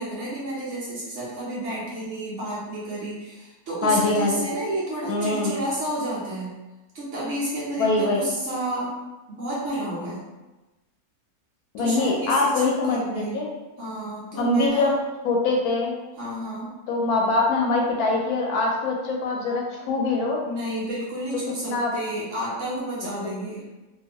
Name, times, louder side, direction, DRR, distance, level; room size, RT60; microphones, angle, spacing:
voice 1, 0.0-6.5 6.9-8.9 9.3-10.2 11.8-13.4 13.8-14.9 16.2-16.7 20.5-23.7, right 1 dB, 55° right, -7 dB, 1.1 m, -31 dB
voice 2, 3.8-4.3 5.1-5.5 7.8-8.2 11.7-13.4 14.4-14.9 15.2-15.9 16.9-20.4 21.6-21.9 23.2-23.3, left 3 dB, 75° left, -1 dB, 1.0 m, -23 dB
2.8 x 2.6 x 2.9 m, 1.1 s
omnidirectional pair, 1.7 m